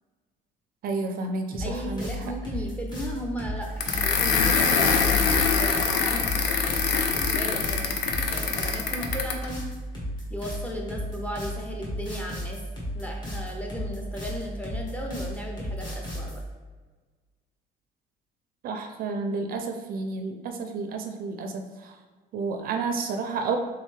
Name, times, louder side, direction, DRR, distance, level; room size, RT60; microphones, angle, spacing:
voice 1, 0.8-2.1 18.6-22.0 22.3-23.6, right 4 dB, 60° right, 5 dB, 0.4 m, -31 dB
sound 1, 1.5-16.4, equal, 25° left, 1.2 m, -34 dB
voice 2, 1.6-9.6 10.3-12.6 12.9-16.4, equal, 10° left, 0 dB, 0.6 m, -36 dB
sound 2, 3.8-9.5, left 5 dB, 80° left, 0.5 m, -24 dB
3.5 x 3.2 x 3.2 m, 1.4 s
cardioid pair, 110°, 17 cm